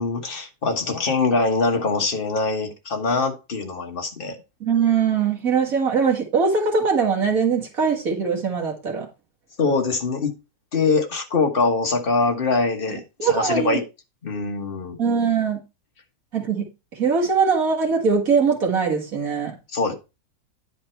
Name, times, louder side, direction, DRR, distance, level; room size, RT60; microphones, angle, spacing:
voice 1, 0.0-4.4 9.6-10.3 10.7-13.8 14.2-15.0 19.7-19.9, left 3 dB, 35° left, 1.4 m, -23 dB
voice 2, 4.6-9.1 13.2-13.8 15.0-15.6 16.3-16.7 16.9-19.6, right 5 dB, 60° right, 2.2 m, -21 dB
10.0 x 4.5 x 4.4 m
omnidirectional pair, 1.7 m